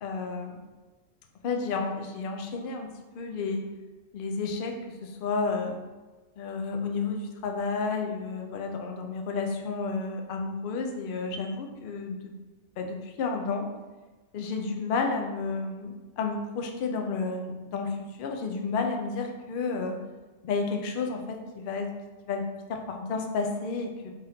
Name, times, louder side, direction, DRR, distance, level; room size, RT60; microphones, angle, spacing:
voice 1, 0.0-0.6 1.4-2.9 3.2-3.6 4.1-4.7 5.0-5.8 6.4-12.2 12.8-13.7 14.3-19.9 20.4-21.9 22.2-22.4 22.7-24.1, left 4 dB, 65° left, 3 dB, 0.5 m, -31 dB
3.8 x 3.4 x 2.7 m, 1.2 s
omnidirectional pair, 1.3 m